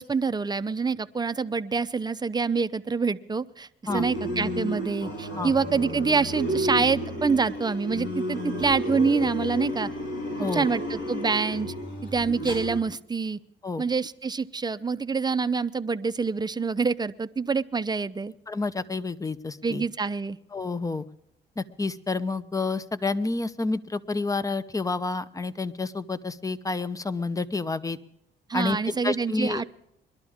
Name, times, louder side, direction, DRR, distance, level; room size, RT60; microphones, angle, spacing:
voice 1, 0.0-9.9 10.4-11.7 12.0-13.4 13.8-18.3 19.6-20.4 28.5-29.6, right 5 dB, 20° right, 13 dB, 0.6 m, -26 dB
sound 1, 3.9-12.8, equal, 65° left, 4.2 m, -32 dB
voice 2, 18.5-19.8 20.5-21.0 21.6-28.0 28.5-29.6, left 3 dB, 15° left, 14 dB, 0.8 m, -29 dB
22.0 x 12.0 x 3.6 m, 0.76 s
cardioid pair, 90°, 20 cm